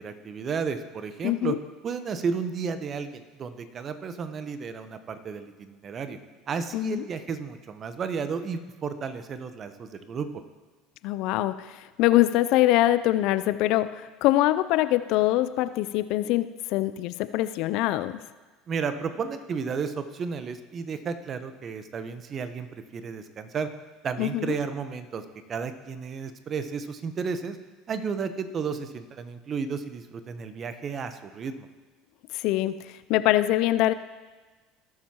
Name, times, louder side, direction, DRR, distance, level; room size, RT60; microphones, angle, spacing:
voice 1, 0.0-1.6 1.8-6.2 6.5-10.3 18.7-22.7 22.9-23.7 24.0-27.6 27.9-31.7, right 5 dB, 40° right, 10 dB, 0.9 m, -33 dB
voice 2, 1.2-1.6 6.7-7.0 11.0-18.2 24.2-24.5 32.3-32.8 33.1-33.9, left 15 dB, 65° left, 14 dB, 0.4 m, -24 dB
18.0 x 7.3 x 3.0 m, 1.3 s
hypercardioid pair, 75°, 0 cm